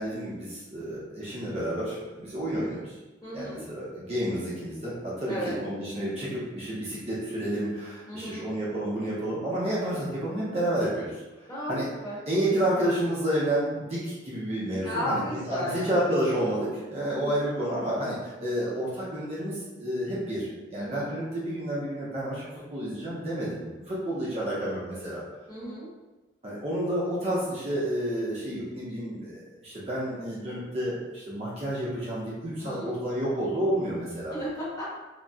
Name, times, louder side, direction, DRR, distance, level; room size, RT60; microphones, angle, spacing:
voice 1, 0.0-3.0 3.3-11.2 11.7-11.9 12.3-22.4 22.7-25.2 26.4-34.3, right 1 dB, 30° right, -7 dB, 0.6 m, -30 dB
voice 2, 3.2-3.6 5.3-5.6 8.1-8.5 11.5-11.8 12.0-12.2 14.8-15.9 17.1-17.4 20.7-21.1 25.5-25.9 32.6-33.0 34.3-34.9, equal, 20° left, -9 dB, 1.0 m, -34 dB
3.9 x 2.0 x 2.3 m, 1.2 s
head